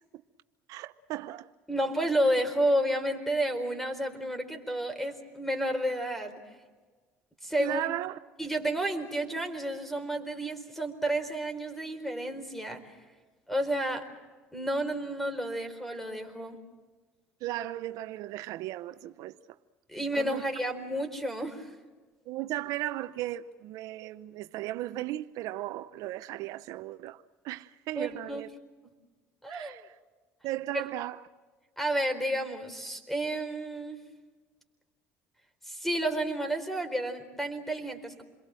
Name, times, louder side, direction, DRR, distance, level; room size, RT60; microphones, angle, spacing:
voice 1, 0.7-1.5 7.6-8.2 17.4-19.3 20.1-20.4 22.3-28.5 29.5-29.9 30.4-31.2, right 15 dB, 70° right, 0.8 m, -36 dB
voice 2, 1.7-6.4 7.4-7.8 8.4-13.0 13.5-14.1 14.5-16.6 19.9-21.7 28.0-28.4 29.4-29.8 30.7-30.8 31.8-34.0 35.6-38.2, right 1 dB, 5° left, 4.3 m, -31 dB
28.0 x 22.5 x 7.7 m
supercardioid pair, 95°, 6 cm